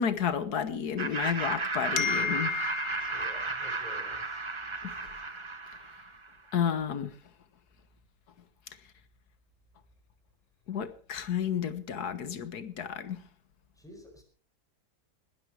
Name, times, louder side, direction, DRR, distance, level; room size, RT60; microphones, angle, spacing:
voice 1, 0.0-3.8 4.8-5.0 6.5-7.1 10.7-13.2, left 8 dB, 90° left, 13 dB, 1.8 m, -31 dB
Laughter, 1.0-6.3, right 3 dB, 20° right, 0.9 m, -34 dB
voice 2, 3.1-4.4 13.8-14.2, equal, ahead, 4 dB, 4.5 m, -50 dB
20.0 x 12.5 x 4.7 m, 0.42 s
omnidirectional pair, 1.6 m